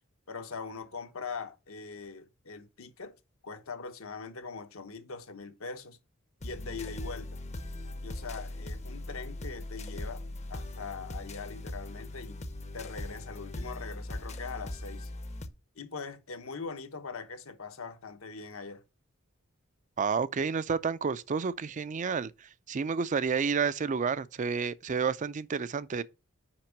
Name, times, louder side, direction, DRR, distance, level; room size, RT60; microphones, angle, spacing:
voice 1, 0.3-3.2 3.4-6.0 6.4-7.4 8.0-12.4 12.7-15.1 15.7-18.8, left 4 dB, 75° left, 1.0 m, -42 dB
sound 1, 6.4-15.5, left 1 dB, 30° left, 0.7 m, -40 dB
voice 2, 20.0-22.3 22.7-26.0, right 5 dB, 35° right, 0.4 m, -30 dB
5.9 x 5.2 x 5.8 m
head